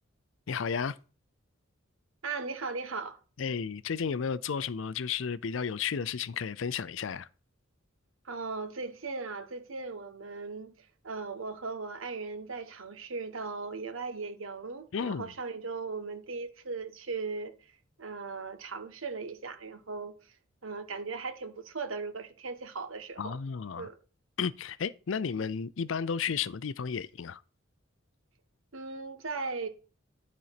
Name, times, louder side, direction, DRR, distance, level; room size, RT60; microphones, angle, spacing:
voice 1, 0.5-1.0 3.4-7.3 14.9-15.3 23.2-23.9 24.4-27.4, left 6 dB, 70° left, 0.5 m, -33 dB
voice 2, 2.2-3.2 8.2-10.7 11.0-17.5 18.0-20.2 20.6-23.4 23.8-24.0 28.7-29.7, right 4 dB, 85° right, 1.2 m, -38 dB
12.0 x 4.2 x 5.8 m
head